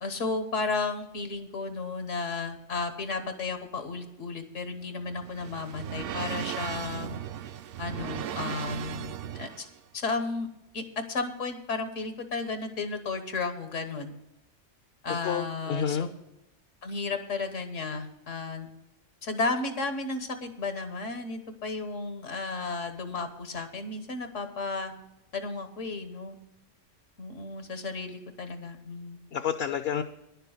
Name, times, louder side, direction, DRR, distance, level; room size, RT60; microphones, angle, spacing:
voice 1, 0.0-7.2 7.8-9.6 9.9-10.5 10.7-14.1 15.0-16.0 16.8-18.7 19.2-24.9 25.3-26.4 27.2-29.2, left 3 dB, 80° left, 8 dB, 1.5 m, -33 dB
sound 1, 4.7-9.8, right 10 dB, 60° right, 0.6 m, -37 dB
voice 2, 15.2-16.1 29.3-30.0, left 8 dB, 60° left, 9 dB, 0.8 m, -29 dB
10.5 x 6.8 x 8.0 m, 0.87 s
omnidirectional pair, 1.3 m